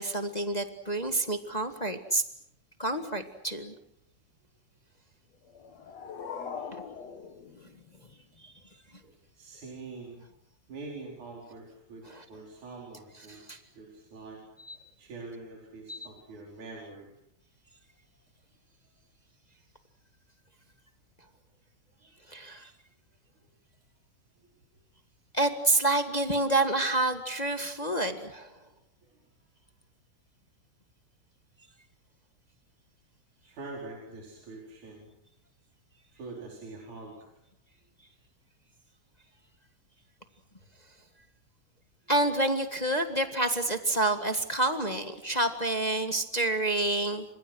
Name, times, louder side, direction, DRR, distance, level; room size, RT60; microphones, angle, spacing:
voice 1, 0.0-2.2 2.8-3.7 6.7-6.8 12.1-12.2 13.3-13.6 14.7-14.8 15.9-16.0 22.3-22.7 25.3-28.5 42.1-47.2, right 2 dB, 25° left, 6 dB, 0.9 m, -28 dB
sound 1, 5.4-8.4, left 6 dB, 55° left, 3.2 m, -42 dB
voice 2, 9.3-10.2 10.7-14.4 15.0-17.1 22.0-22.5 24.4-24.5 29.0-29.2 33.4-35.1 36.1-37.3, right 3 dB, 70° right, -1 dB, 6.1 m, -45 dB
30.0 x 26.5 x 6.3 m, 0.74 s
omnidirectional pair, 3.6 m